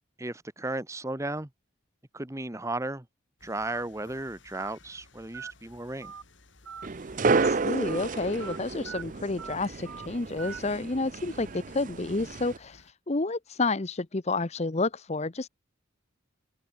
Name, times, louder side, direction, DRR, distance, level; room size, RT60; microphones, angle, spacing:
voice 1, 0.2-1.5 2.1-3.1 3.4-6.1, right 2 dB, 15° right, 1.0 m, -34 dB
sound 1, 3.4-12.9, left 3 dB, 60° left, 3.2 m, -57 dB
Telephone, 3.6-3.8 4.5-4.7 5.3-5.5 6.0-6.2 6.7-6.9 7.3-7.5 7.9-8.0 8.4-8.6 8.9-9.0 9.4-9.6 9.9-10.1 10.4-10.6, right 6 dB, 85° right, 1.6 m, -41 dB
sound 2, 6.8-12.6, right 4 dB, 40° right, 0.6 m, -31 dB
voice 2, 7.3-12.8 13.1-15.5, left 3 dB, 30° left, 0.8 m, -30 dB
open air
head